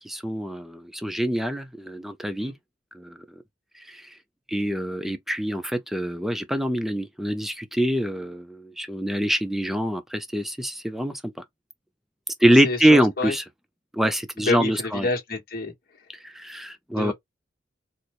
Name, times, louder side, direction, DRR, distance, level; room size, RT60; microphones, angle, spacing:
voice 1, 0.0-2.5 2.9-3.2 3.9-4.1 4.5-11.4 12.4-13.4 13.9-15.1 16.2-17.1, equal, ahead, 0.5 m, -24 dB
voice 2, 12.6-13.3 14.4-15.7 16.9-17.1, left 2 dB, 50° left, 1.3 m, -28 dB
4.2 x 2.2 x 3.1 m
head